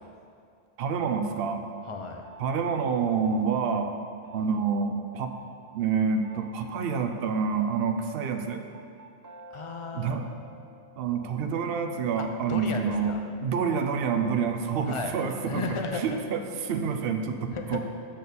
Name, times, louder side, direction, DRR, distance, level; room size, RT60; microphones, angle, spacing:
voice 1, 0.8-1.7 2.4-3.9 4.3-5.3 5.7-8.6 9.9-10.3 11.0-13.1 13.4-15.6 15.9-17.8, right 6 dB, 65° right, 6 dB, 0.8 m, -28 dB
sound 1, 1.2-1.6 2.2-2.6 3.2-3.6 4.2-4.6 5.2-5.6 6.2-6.6 7.2-12.3, right 2 dB, 25° right, 0.4 m, -50 dB
voice 2, 1.9-2.2 9.5-10.2 12.2-13.2 14.9-15.1 15.5-16.2 17.5-17.8, left 4 dB, 35° left, 4 dB, 0.6 m, -34 dB
9.2 x 4.2 x 6.7 m, 2.3 s
omnidirectional pair, 1.1 m